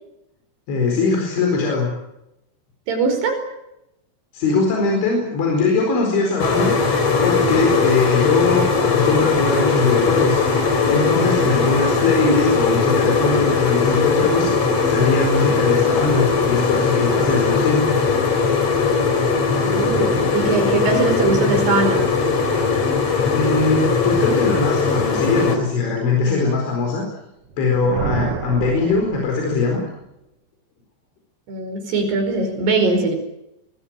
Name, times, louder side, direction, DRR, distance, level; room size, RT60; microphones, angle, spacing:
voice 1, 0.7-1.9 4.3-6.7 7.2-10.5 10.9-14.5 14.9-17.8 23.3-27.0 27.6-29.8, left 4 dB, 80° left, 1 dB, 6.9 m, -21 dB
voice 2, 2.9-3.4 19.6-22.0 31.5-33.1, right 3 dB, 60° right, 5 dB, 7.0 m, -21 dB
sound 1, 6.4-25.6, left 4 dB, 35° left, 3.9 m, -19 dB
Thunder, 27.4-29.8, right 6 dB, 90° right, 1.3 m, -29 dB
25.5 x 20.0 x 9.0 m, 0.89 s
omnidirectional pair, 5.3 m